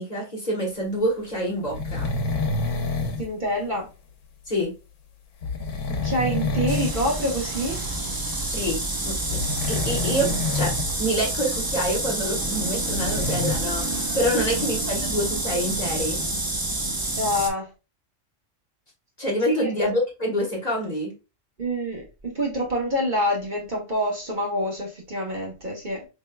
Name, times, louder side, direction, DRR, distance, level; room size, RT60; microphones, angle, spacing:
voice 1, 0.0-2.1 4.5-4.7 8.4-8.8 9.0-9.4 9.7-10.7 11.0-13.9 14.1-16.2 19.2-21.1, equal, 35° left, -2 dB, 1.2 m, -26 dB
sound 1, 1.7-3.3 5.4-7.0 7.3-7.5 9.3-10.9 11.2-11.3 12.7-13.6, left 3 dB, 80° left, 1.0 m, -27 dB
voice 2, 3.2-3.9 6.0-7.8 14.3-14.6 17.2-17.7 19.4-19.8 21.6-26.1, equal, 40° right, -2 dB, 1.1 m, -27 dB
sound 2, 6.7-17.5, right 2 dB, 25° right, 0.5 m, -28 dB
4.4 x 3.2 x 2.2 m, 0.29 s
omnidirectional pair, 1.3 m